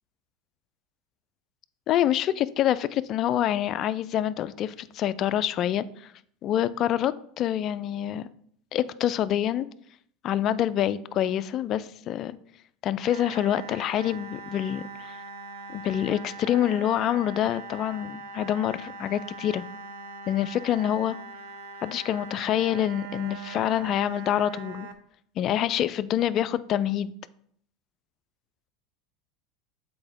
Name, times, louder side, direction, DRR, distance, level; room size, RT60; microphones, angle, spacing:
voice 1, 1.9-6.1 6.4-8.3 8.7-9.7 10.2-12.4 12.8-15.2 15.7-19.6 20.3-21.2 21.8-24.9 25.4-27.2, left 11 dB, 45° left, 0.4 m, -26 dB
sound 1, 13.1-24.9, right 4 dB, 80° right, 0.8 m, -42 dB
7.8 x 4.5 x 3.6 m
hypercardioid pair, 95°, 0 cm